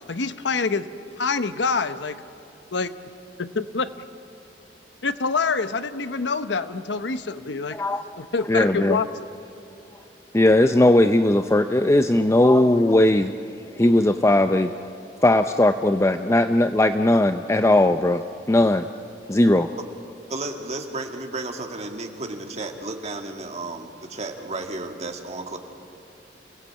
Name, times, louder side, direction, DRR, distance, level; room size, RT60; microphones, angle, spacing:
voice 1, 0.1-0.9 1.2-2.2 2.7-2.9 3.4-3.9 5.0-7.8 8.2-9.1, left 4 dB, 70° left, 11 dB, 0.9 m, -26 dB
voice 2, 7.7-8.0 8.5-9.0 10.3-13.3 13.8-14.7 15.2-18.2 18.5-18.9 19.3-19.7, left 1 dB, 15° left, 8 dB, 0.5 m, -18 dB
voice 3, 20.3-25.6, right 2 dB, 35° right, 3 dB, 1.9 m, -33 dB
28.0 x 17.5 x 8.6 m, 2.9 s
head